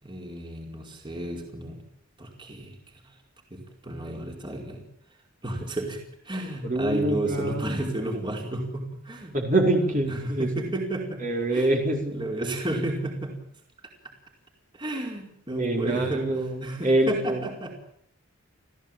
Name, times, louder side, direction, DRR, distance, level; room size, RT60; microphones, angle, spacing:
voice 1, 0.0-1.8 2.2-2.8 3.0-3.1 3.5-4.8 5.4-9.4 10.1-11.2 11.5-11.7 12.1-13.4 14.7-17.7, right 1 dB, 20° right, 1 dB, 4.8 m, -32 dB
voice 2, 6.6-7.7 9.3-10.5 11.2-12.2 15.6-17.4, right 1 dB, 35° right, 1 dB, 4.8 m, -25 dB
29.5 x 16.0 x 9.1 m, 0.73 s
head